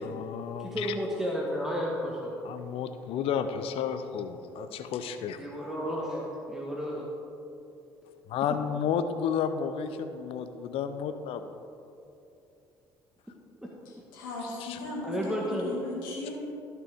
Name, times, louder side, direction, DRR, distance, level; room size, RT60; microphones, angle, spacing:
voice 1, 0.0-0.9 2.4-5.5 8.3-11.4 14.6-14.8, left 7 dB, 60° left, 9 dB, 0.6 m, -32 dB
voice 2, 0.6-2.4 5.4-7.1 15.0-15.7, equal, 5° right, -3 dB, 1.4 m, -32 dB
voice 3, 14.1-16.3, left 2 dB, 80° left, -3 dB, 2.1 m, -37 dB
14.5 x 5.9 x 3.5 m, 2.8 s
hypercardioid pair, 55°, 11 cm